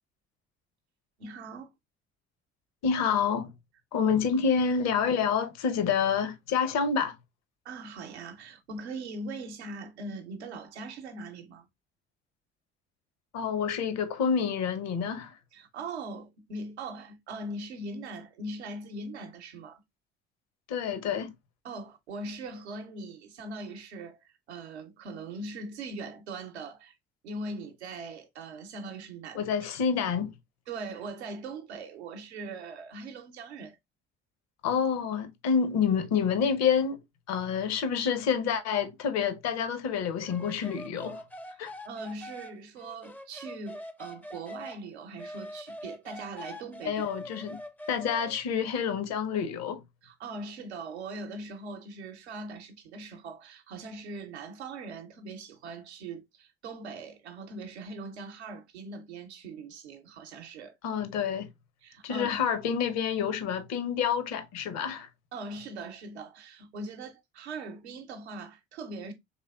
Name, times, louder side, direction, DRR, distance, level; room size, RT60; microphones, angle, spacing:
voice 1, 1.2-1.7 3.9-4.1 7.6-11.7 15.5-19.8 21.6-27.0 27.2-29.5 30.7-33.8 41.8-47.0 50.0-60.8 61.8-62.4 65.3-69.1, right 3 dB, 85° right, 0.7 m, -41 dB
voice 2, 2.8-3.5 3.9-7.2 13.3-15.3 20.7-21.3 29.3-30.3 34.6-37.0 37.3-41.2 41.6-41.7 46.8-47.6 47.9-49.8 60.8-61.5 62.0-65.1, left 6 dB, 55° left, 0.8 m, -28 dB
sound 1, 40.2-44.8 45.2-48.4, left 1 dB, 5° left, 0.4 m, -43 dB
4.1 x 3.3 x 2.2 m
figure-of-eight pair, 50°, 32 cm